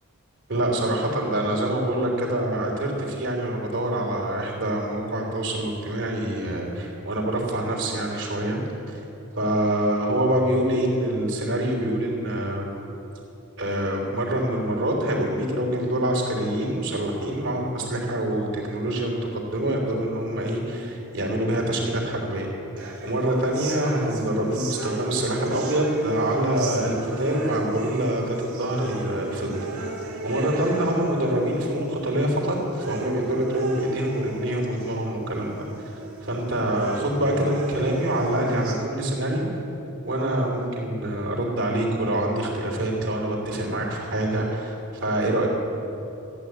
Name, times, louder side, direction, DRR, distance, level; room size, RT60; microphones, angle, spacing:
voice 1, 0.5-8.6 8.9-9.0 9.3-12.7 13.6-22.5 23.0-29.6 30.2-35.9 36.2-39.5 40.0-44.7 45.0-45.5, right 1 dB, 60° right, -1 dB, 3.3 m, -25 dB
sound 1, 22.8-38.8, right 2 dB, 80° right, 2.7 m, -36 dB
14.5 x 9.0 x 9.5 m, 2.9 s
head